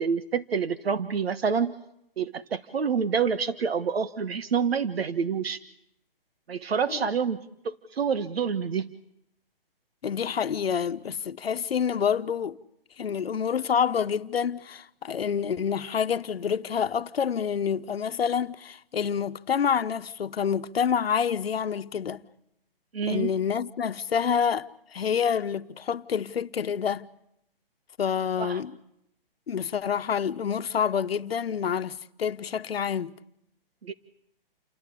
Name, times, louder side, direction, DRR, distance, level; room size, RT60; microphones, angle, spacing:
voice 1, 0.0-1.7 2.2-5.6 6.5-7.4 7.6-8.9 22.9-23.3 28.4-28.6 33.8-33.9, right 6 dB, 85° right, 1.4 m, -27 dB
voice 2, 10.0-12.6 13.0-22.2 23.1-27.1 28.0-28.7 29.5-33.1, left 7 dB, 85° left, 1.1 m, -27 dB
29.0 x 20.5 x 8.5 m
hypercardioid pair, 160°, 30 cm